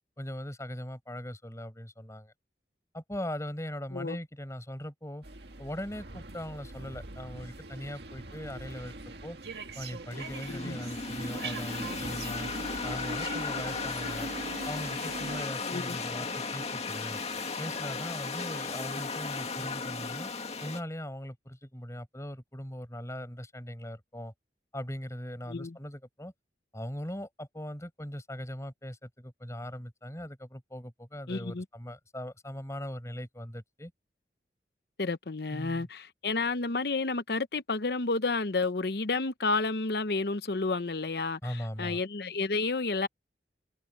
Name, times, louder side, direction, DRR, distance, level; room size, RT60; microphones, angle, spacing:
voice 1, 0.2-2.3 2.9-5.2 5.6-8.9 9.2-9.4 9.7-12.5 12.8-14.3 14.6-17.2 17.6-20.3 20.6-24.3 24.7-26.3 26.7-33.9 35.5-35.9 41.4-42.0, equal, 15° left, 7.4 m, -40 dB
sound 1, 5.2-15.5, right 3 dB, 70° right, 1.8 m, -42 dB
sound 2, 10.1-20.8, left 4 dB, 35° left, 2.1 m, -36 dB
voice 2, 10.5-10.8 15.7-16.0 25.5-25.8 31.3-31.6 35.0-43.1, left 3 dB, 60° left, 0.8 m, -31 dB
head